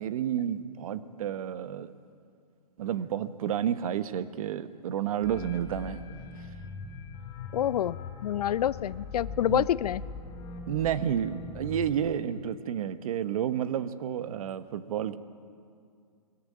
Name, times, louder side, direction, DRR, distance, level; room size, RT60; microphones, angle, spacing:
voice 1, 0.0-1.9 2.8-6.0 9.5-9.7 10.7-15.2, right 9 dB, 55° right, 12 dB, 1.1 m, -30 dB
sound 1, 5.2-12.1, left 4 dB, 40° left, 3.6 m, -41 dB
voice 2, 7.5-10.0, left 11 dB, 70° left, 20 dB, 0.5 m, -27 dB
21.0 x 15.0 x 8.7 m, 2.3 s
hypercardioid pair, 145°, 21 cm